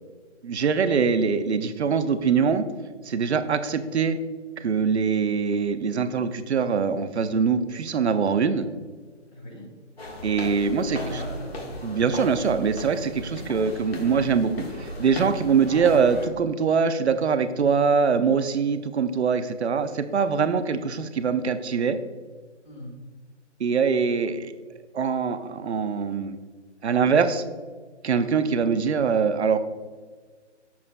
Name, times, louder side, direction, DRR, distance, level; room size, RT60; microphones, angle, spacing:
voice 1, 0.4-2.7 3.1-4.2 4.6-8.7 10.2-11.0 11.8-22.0 23.6-24.5 24.9-26.4 26.8-27.5 28.0-29.6, right 6 dB, 65° right, 11 dB, 0.7 m, -23 dB
voice 2, 9.3-9.7 10.6-12.0 22.6-22.9, equal, 40° left, -4 dB, 1.8 m, -39 dB
sound 1, 10.0-16.3, equal, 55° left, 1.5 m, -36 dB
8.4 x 7.1 x 2.2 m, 1.5 s
hypercardioid pair, 175°, 36 cm